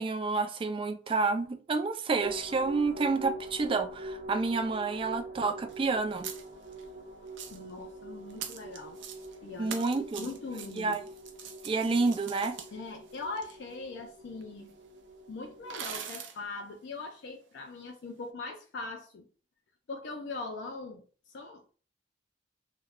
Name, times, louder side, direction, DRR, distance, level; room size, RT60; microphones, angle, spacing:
voice 1, 0.0-6.3 9.6-10.3 10.8-11.0 11.6-12.6, right 3 dB, 30° right, 0.3 m, -29 dB
sound 1, 2.2-16.0, right 2 dB, 50° right, 0.8 m, -45 dB
sound 2, 5.7-5.8 6.1-6.8 7.3-7.7 8.3-9.4 9.7-13.5 14.4-14.5 14.7-14.8 15.7-16.4, right 7 dB, 90° right, 0.5 m, -43 dB
voice 2, 7.5-9.0 9.4-9.8 10.2-11.0 12.7-14.8 15.3-19.2 19.9-21.0 21.3-21.7, left 3 dB, 70° left, 0.4 m, -41 dB
2.3 x 2.1 x 3.4 m
head